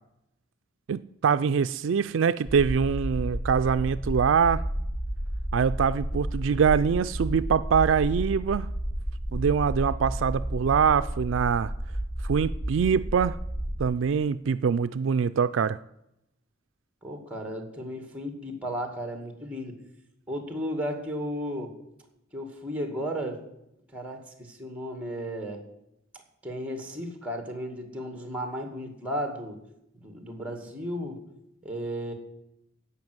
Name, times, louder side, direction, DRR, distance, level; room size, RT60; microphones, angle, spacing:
voice 1, 0.9-4.6 5.5-8.7 9.3-11.7 12.2-13.4 13.8-15.8, right 6 dB, 65° right, 13 dB, 0.4 m, -24 dB
sound 1, 2.4-13.8, right 1 dB, 60° left, 2.3 m, -32 dB
voice 2, 17.0-19.7 20.3-21.7 22.3-23.4 23.9-24.2 24.5-25.6 26.4-29.6 30.0-31.2 31.6-32.1, equal, 5° right, 5 dB, 2.2 m, -34 dB
16.0 x 5.7 x 7.8 m, 0.82 s
head